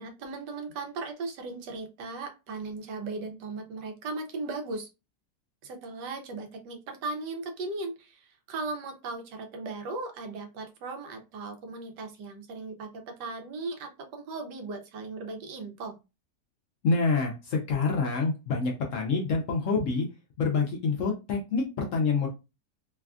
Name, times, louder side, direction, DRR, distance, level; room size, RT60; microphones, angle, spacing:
voice 1, 0.0-4.9 5.6-16.0, right 3 dB, 90° right, 4 dB, 1.3 m, -37 dB
voice 2, 16.8-20.1 20.4-22.3, left 4 dB, 65° left, 1 dB, 0.8 m, -27 dB
3.2 x 2.3 x 2.4 m, 0.27 s
omnidirectional pair, 1.8 m